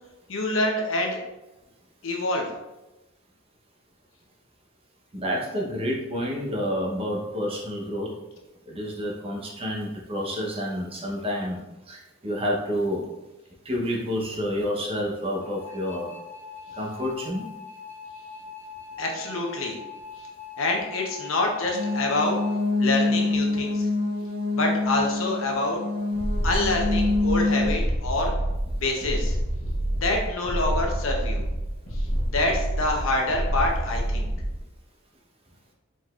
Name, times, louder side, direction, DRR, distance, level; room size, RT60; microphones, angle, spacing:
voice 1, 0.3-1.2 2.0-2.4 19.0-19.8 20.6-22.4 22.8-23.9 24.5-25.8 26.4-28.3 28.7-29.4 30.0-31.4 31.9-32.1 32.3-34.3, left 2 dB, 80° left, 1 dB, 0.9 m, -26 dB
voice 2, 5.1-8.1 8.7-11.6 11.9-13.0 13.6-16.1 16.8-17.5, equal, 30° right, -2 dB, 0.9 m, -29 dB
sound 1, 15.4-22.6, left 4 dB, 10° left, 0.7 m, -42 dB
sound 2, 21.7-27.7, left 2 dB, 85° right, 1.2 m, -26 dB
sound 3, 26.1-34.6, right 1 dB, 40° left, 1.2 m, -27 dB
5.0 x 4.0 x 2.4 m, 1.0 s
head